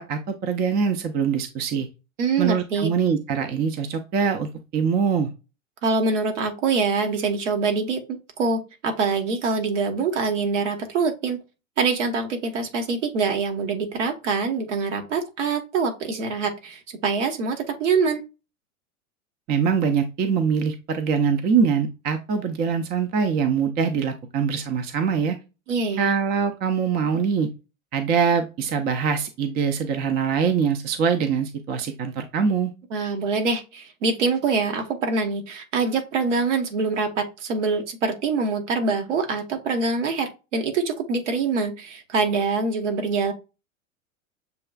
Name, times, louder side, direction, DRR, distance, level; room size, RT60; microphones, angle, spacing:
voice 1, 0.0-1.9 2.4-5.3 19.5-25.4 26.0-27.5 27.9-32.7, right 6 dB, 25° right, 0.6 m, -23 dB
voice 2, 2.2-2.9 5.8-11.4 11.8-18.2 25.7-26.1 32.9-43.3, right 4 dB, 60° right, 1.4 m, -24 dB
6.9 x 3.1 x 2.3 m
figure-of-eight pair, 90°, 40 cm